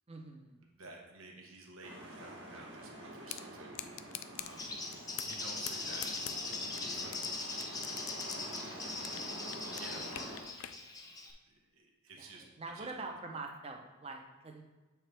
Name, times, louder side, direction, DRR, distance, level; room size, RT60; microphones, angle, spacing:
voice 1, 0.1-0.6 8.5-8.6 9.9-10.2 12.2-14.6, right 3 dB, 30° right, 2 dB, 0.7 m, -45 dB
voice 2, 0.8-3.7 4.4-4.8 5.2-6.1 6.8-7.5 8.8-9.2 9.8-10.5 11.5-12.4 12.7-12.9, right 2 dB, 90° right, 1 dB, 1.0 m, -52 dB
sound 1, 1.8-10.4, right 1 dB, 60° right, 1.4 m, -47 dB
sound 2, 3.3-3.4 3.7-4.5 4.9-5.4 5.7-7.3 7.6-9.3 9.5-10.8, left 12 dB, 75° left, 0.4 m, -43 dB
Bird, 4.4-11.3, left 3 dB, 20° left, 0.6 m, -41 dB
7.5 x 4.5 x 3.4 m, 1.2 s
head